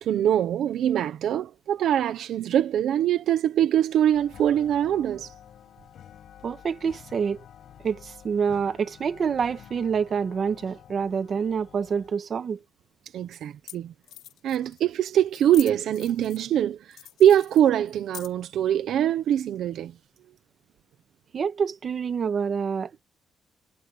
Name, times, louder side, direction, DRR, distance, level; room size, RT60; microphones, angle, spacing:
voice 1, 0.0-5.3 13.1-13.9 14.4-19.9, right 10 dB, 65° right, 1.0 m, -23 dB
sound 1, 4.1-12.1, left 10 dB, 55° left, 7.4 m, -49 dB
voice 2, 6.4-7.4 7.8-12.6 21.3-23.0, right 6 dB, 35° right, 1.5 m, -27 dB
sound 2, 12.6-12.7 13.4-13.5 13.7-13.8 14.0-14.8 15.3-16.5 16.9-18.5, left 12 dB, 85° left, 6.4 m, -44 dB
cardioid pair, 175°, 0 cm